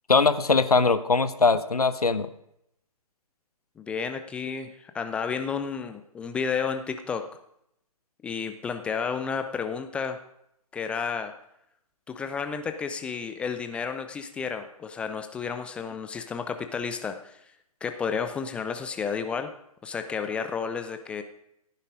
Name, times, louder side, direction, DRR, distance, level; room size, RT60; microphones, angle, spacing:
voice 1, 0.1-2.3, left 4 dB, 75° left, 13 dB, 1.0 m, -21 dB
voice 2, 3.8-7.2 8.2-10.2 10.7-11.3 12.1-17.4 17.8-19.5 19.8-21.2, left 6 dB, 5° left, 8 dB, 0.4 m, -31 dB
16.5 x 9.4 x 5.2 m, 0.78 s
figure-of-eight pair, 125°, 19 cm